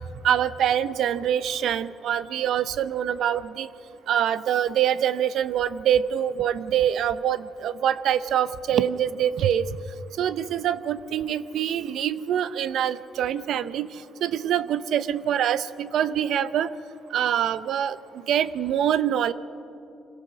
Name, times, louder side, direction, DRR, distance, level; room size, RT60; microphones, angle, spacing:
voice 1, 0.2-3.7 4.1-9.6 10.2-13.9 14.2-16.7 17.1-18.0 18.3-19.3, right 10 dB, 65° right, 15 dB, 0.7 m, -25 dB
26.5 x 16.5 x 6.3 m, 2.6 s
cardioid pair, 145°, 0 cm